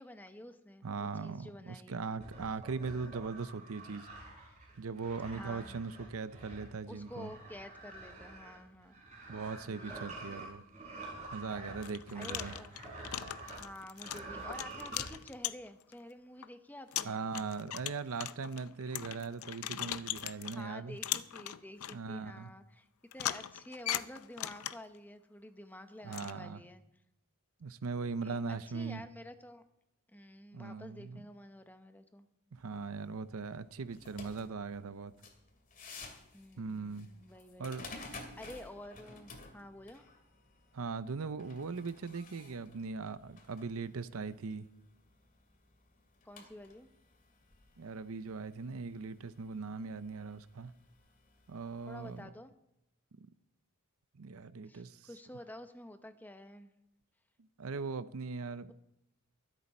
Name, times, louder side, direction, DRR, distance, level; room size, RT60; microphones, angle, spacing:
voice 1, 0.0-2.0 5.3-5.8 6.9-9.0 9.6-10.5 12.1-12.8 13.4-17.2 20.4-22.9 23.1-26.8 28.2-28.4 28.7-29.6 30.1-32.3 36.3-37.7 38.4-40.1 46.2-46.9 51.9-52.5 54.7-56.7, left 1 dB, 10° left, 0.8 m, -50 dB
voice 2, 0.8-4.1 4.8-7.3 9.3-10.6 11.3-12.5 17.0-21.0 21.9-22.5 26.0-26.6 27.6-29.0 30.5-31.2 32.5-35.1 36.6-37.1 37.6-37.9 40.7-44.7 47.8-50.7 51.5-52.3 54.2-55.1 57.6-58.7, right 4 dB, 70° right, 0.6 m, -40 dB
Sliding Concrete Blocks, 2.2-13.7 13.9-15.1, right 2 dB, 35° right, 5.4 m, -48 dB
sound 1, 11.1-11.3 11.8-15.9 16.4-16.5 16.9-20.6 21.0-22.0 23.1-25.0 26.1-26.3, left 12 dB, 70° left, 0.5 m, -39 dB
sound 2, 32.6-52.2, left 3 dB, 40° left, 2.3 m, -55 dB
23.5 x 8.3 x 4.3 m
head